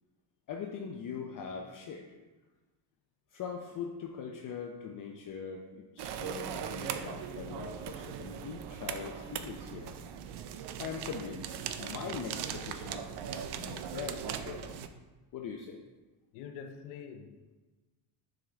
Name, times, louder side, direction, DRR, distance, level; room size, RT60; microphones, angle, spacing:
voice 1, 0.5-2.1 3.3-10.0 10.8-14.7 15.3-15.8, left 6 dB, 40° left, 1 dB, 0.7 m, -41 dB
sound 1, 6.0-14.9, right 8 dB, 55° right, 0.6 m, -39 dB
voice 2, 16.3-17.6, left 7 dB, 85° left, 5 dB, 0.7 m, -46 dB
6.0 x 4.9 x 3.5 m, 1.2 s
cardioid pair, 105°, 49 cm